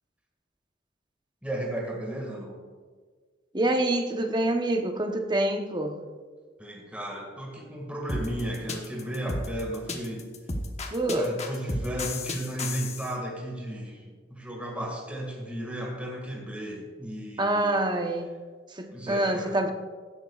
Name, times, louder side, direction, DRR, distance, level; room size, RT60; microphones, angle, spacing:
voice 1, 1.4-2.6 6.6-10.3 11.1-17.8 18.9-19.6, right 1 dB, 5° right, -1 dB, 1.9 m, -34 dB
voice 2, 3.5-6.0 10.9-11.3 17.4-18.3 18.7-19.7, right 1 dB, 25° right, 5 dB, 0.9 m, -26 dB
sound 1, 8.1-13.1, left 2 dB, 35° left, 1.0 m, -33 dB
16.0 x 11.0 x 2.4 m, 1.5 s
head